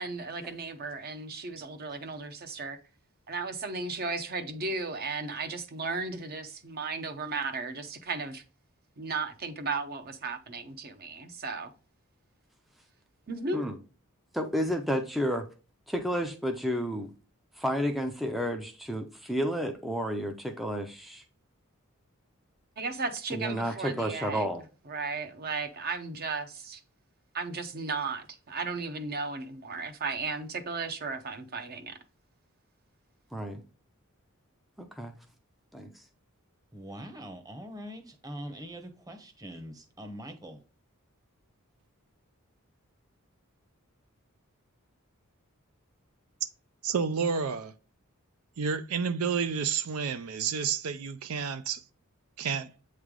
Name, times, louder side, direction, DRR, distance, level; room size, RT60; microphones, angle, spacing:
voice 1, 0.0-2.8 3.3-8.4 9.0-11.7 13.3-13.6 22.8-24.5 24.9-26.8 27.3-32.0, right 4 dB, 45° right, 0.7 m, -35 dB
voice 2, 14.3-15.5 15.9-17.1 17.6-21.2 23.3-24.6 33.3-33.6 34.8-35.2 35.7-36.0, equal, ahead, 0.4 m, -31 dB
voice 3, 36.7-40.6, equal, 15° right, 0.9 m, -43 dB
voice 4, 46.8-47.7 48.6-51.8 52.4-52.7, right 6 dB, 80° right, 0.4 m, -30 dB
7.9 x 3.2 x 3.7 m
head